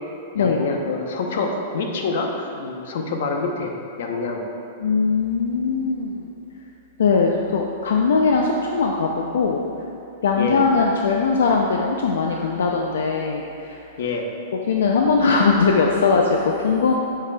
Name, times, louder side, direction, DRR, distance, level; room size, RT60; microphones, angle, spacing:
voice 1, 0.4-4.4 10.4-10.6 14.0-14.3, left 3 dB, 70° left, 2 dB, 0.8 m, -26 dB
voice 2, 4.8-6.2 7.0-9.6 10.2-13.8 14.7-16.9, left 4 dB, 90° left, 0 dB, 0.5 m, -20 dB
7.5 x 6.6 x 2.3 m, 3.0 s
hypercardioid pair, 150°, 0 cm